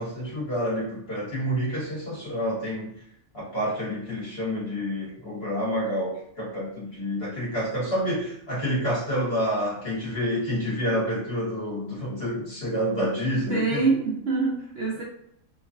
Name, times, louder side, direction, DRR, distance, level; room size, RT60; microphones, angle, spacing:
voice 1, 0.0-2.9 3.3-13.8, equal, 45° left, -7 dB, 1.5 m, -28 dB
voice 2, 13.5-15.0, right 4 dB, 60° right, -4 dB, 0.8 m, -25 dB
3.1 x 2.3 x 2.5 m, 0.73 s
omnidirectional pair, 1.4 m